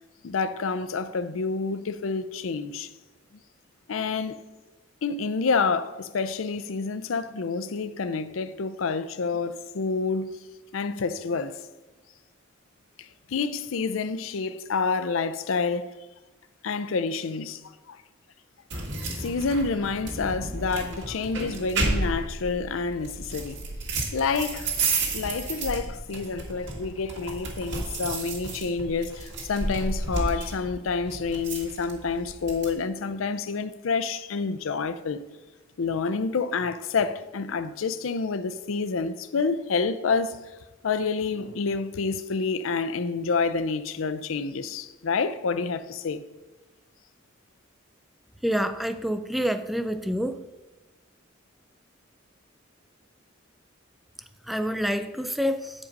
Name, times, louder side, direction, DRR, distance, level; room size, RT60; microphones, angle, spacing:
voice 1, 0.2-2.9 3.9-4.4 5.0-10.4 10.7-11.6 13.0-15.9 16.6-18.0 18.7-18.8 19.2-23.6 24.1-24.7 25.1-35.2 35.8-40.6 40.8-46.2, left 4 dB, 80° left, 0.5 m, -28 dB
sound 1, 18.7-32.7, right 3 dB, 60° right, 1.9 m, -32 dB
voice 2, 48.4-50.4 54.5-55.7, equal, ahead, 0.4 m, -27 dB
8.5 x 5.2 x 5.2 m
head